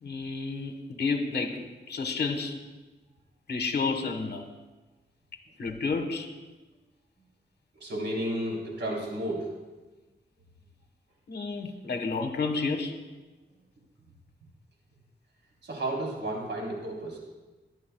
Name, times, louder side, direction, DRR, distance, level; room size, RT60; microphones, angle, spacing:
voice 1, 0.0-2.6 3.5-4.5 5.6-6.3 11.3-13.0, left 4 dB, 65° left, 5 dB, 1.3 m, -31 dB
voice 2, 7.7-9.5 15.6-17.2, right 1 dB, 80° right, -3 dB, 3.7 m, -32 dB
22.5 x 11.0 x 2.3 m, 1.2 s
wide cardioid pair, 100°, 18 cm